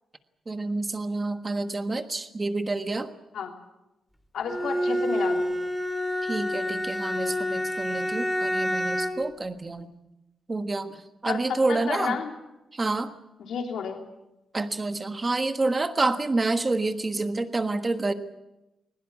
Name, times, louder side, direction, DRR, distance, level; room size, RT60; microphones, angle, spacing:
voice 1, 0.5-3.1 6.2-9.9 10.5-12.2 12.7-13.1 14.5-18.1, right 2 dB, 20° right, 8 dB, 1.4 m, -28 dB
voice 2, 4.3-5.5 11.2-12.3 13.5-14.0, left 6 dB, 75° left, 3 dB, 3.1 m, -31 dB
Bowed string instrument, 4.5-9.3, left 1 dB, 5° left, 2.4 m, -28 dB
21.0 x 20.0 x 8.4 m, 0.95 s
wide cardioid pair, 170°, 0 cm